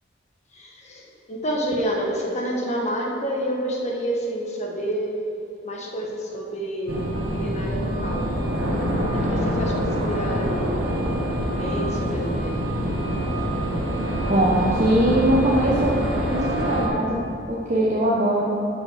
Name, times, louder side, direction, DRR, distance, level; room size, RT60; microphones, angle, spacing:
voice 1, 0.5-5.2 5.6-8.4 9.1-10.8 11.3-12.6, equal, 35° left, -1 dB, 1.4 m, -29 dB
sound 1, 6.9-16.9, equal, 75° right, 2.1 m, -25 dB
voice 2, 14.3-16.0 16.3-18.6, right 1 dB, 40° right, -4 dB, 1.0 m, -21 dB
12.0 x 6.2 x 5.0 m, 3.0 s
head